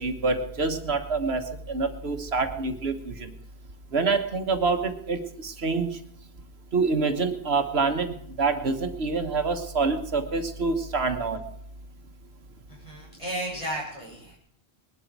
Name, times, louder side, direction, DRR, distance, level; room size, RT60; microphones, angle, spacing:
voice 1, 0.0-3.3 3.9-6.0 6.7-11.4, right 4 dB, 80° right, 8 dB, 1.6 m, -26 dB
voice 2, 12.7-14.4, right 1 dB, 30° left, -3 dB, 6.9 m, -34 dB
20.0 x 12.0 x 4.7 m, 0.68 s
omnidirectional pair, 1.1 m